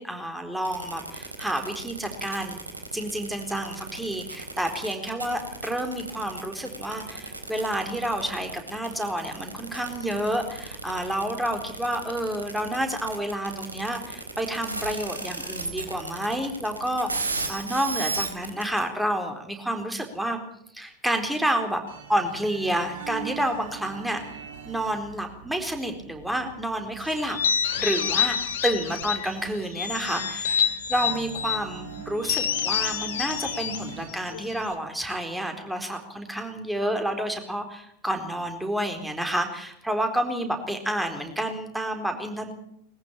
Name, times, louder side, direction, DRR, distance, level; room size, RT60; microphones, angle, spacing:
voice 1, 0.0-2.6 2.9-20.4 20.7-21.8 22.1-24.2 24.7-27.4 27.8-28.4 28.6-42.5, right 1 dB, 5° right, 5 dB, 4.1 m, -29 dB
sound 1, 0.6-18.8, right 3 dB, 80° right, 3.7 m, -34 dB
sound 2, 21.9-34.1, right 9 dB, 55° right, 3.7 m, -43 dB
sound 3, 27.2-29.3 29.7-31.6 32.2-34.7, left 8 dB, 60° left, 2.4 m, -27 dB
22.0 x 14.5 x 8.9 m, 0.75 s
figure-of-eight pair, 90°, 0 cm